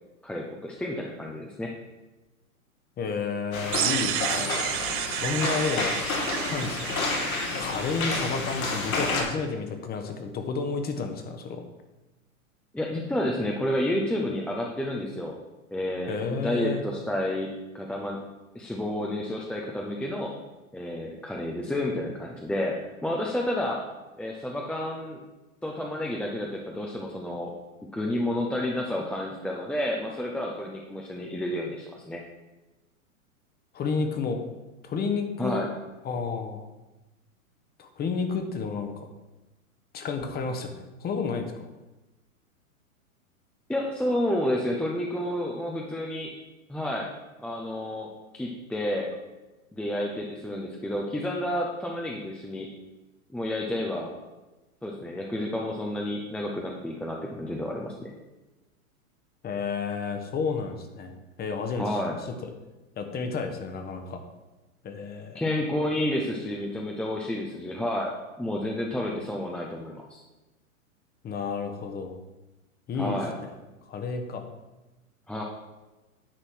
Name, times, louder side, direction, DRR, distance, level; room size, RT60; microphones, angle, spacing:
voice 1, 0.2-1.7 12.7-15.3 15.7-18.2 18.5-20.3 20.7-23.8 24.2-25.2 25.6-27.5 27.9-32.2 35.4-35.7 43.7-46.3 46.7-47.1 47.4-49.1 49.7-52.7 53.3-54.1 54.8-58.1 61.8-62.2 65.3-70.2 73.0-73.4 75.3-75.4, left 1 dB, 5° left, -1 dB, 0.6 m, -30 dB
voice 2, 3.0-4.6 5.1-5.9 6.4-7.3 7.5-11.6 16.1-16.8 33.7-34.4 34.8-35.7 36.0-36.6 37.8-39.1 39.9-40.7 41.0-41.7 59.4-61.1 61.4-62.5 63.0-64.2 64.8-65.4 71.2-72.1 72.9-73.5 73.8-74.4, left 5 dB, 20° left, 6 dB, 1.1 m, -31 dB
sound 1, 3.5-9.2, left 3 dB, 70° left, 2.3 m, -30 dB
sound 2, 3.7-8.6, right 13 dB, 35° right, 0.5 m, -32 dB
10.0 x 4.1 x 6.3 m, 1.1 s
hypercardioid pair, 110°, 43 cm